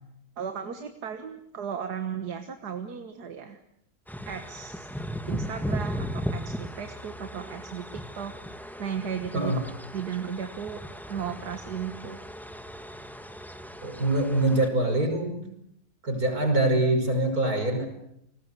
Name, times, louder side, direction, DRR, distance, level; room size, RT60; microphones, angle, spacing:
voice 1, 0.4-3.6 4.3-4.9 5.3-8.3 8.8-9.6 9.9-10.8 11.1-12.2, right 7 dB, 85° right, 8 dB, 2.0 m, -35 dB
sound 1, 4.1-14.7, equal, ahead, 1.4 m, -37 dB
voice 2, 13.8-15.4 16.0-17.9, right 2 dB, 65° right, 5 dB, 5.8 m, -24 dB
29.5 x 20.0 x 8.3 m, 0.75 s
omnidirectional pair, 1.7 m